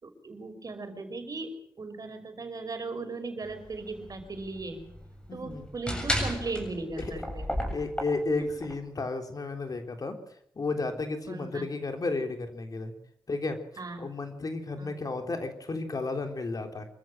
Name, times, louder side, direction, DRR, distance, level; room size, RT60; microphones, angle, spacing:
voice 1, 0.0-4.9 5.3-7.5 8.4-8.5 11.3-11.6 13.8-14.1 14.8-15.0, right 3 dB, 50° right, 7 dB, 5.3 m, -37 dB
sound 1, 3.4-8.7, equal, 15° left, 7.5 m, -34 dB
voice 2, 5.3-5.7 7.0-7.1 7.7-10.2 10.6-12.9 13.3-13.6 14.0-16.9, left 3 dB, 50° left, 5 dB, 3.5 m, -33 dB
26.0 x 14.0 x 7.5 m, 0.69 s
cardioid pair, 65°, 8 cm